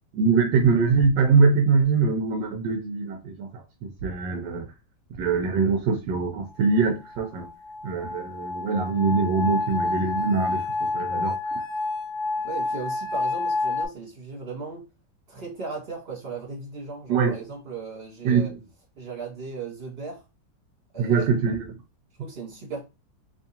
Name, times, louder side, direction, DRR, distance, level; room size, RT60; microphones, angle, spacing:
voice 1, 0.1-4.7 5.2-7.5 7.8-11.6 17.1-17.4 18.2-18.6 21.0-21.8, right 5 dB, 75° right, 1.3 m, -23 dB
sound 1, 6.7-13.9, left 3 dB, 80° left, 1.3 m, -29 dB
voice 2, 12.4-14.8 15.3-18.5 19.0-20.2 20.9-21.2 22.2-22.8, right 4 dB, 35° right, 1.9 m, -37 dB
3.5 x 3.2 x 2.8 m
omnidirectional pair, 1.9 m